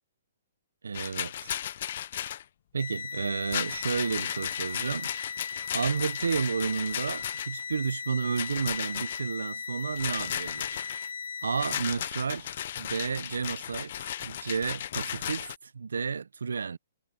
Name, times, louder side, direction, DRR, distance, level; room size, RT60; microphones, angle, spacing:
voice 1, 0.8-1.5 2.7-5.1 5.7-10.9 11.4-13.9 14.2-16.8, right 5 dB, 90° right, 0.5 m, -31 dB
Rattle, 0.9-2.4 3.4-7.6 8.3-9.2 10.0-11.1 11.6-15.6, left 11 dB, 60° left, 0.4 m, -35 dB
sound 1, 2.8-11.8, left 6 dB, 85° left, 3.8 m, -38 dB
hypercardioid pair, 145°, 0 cm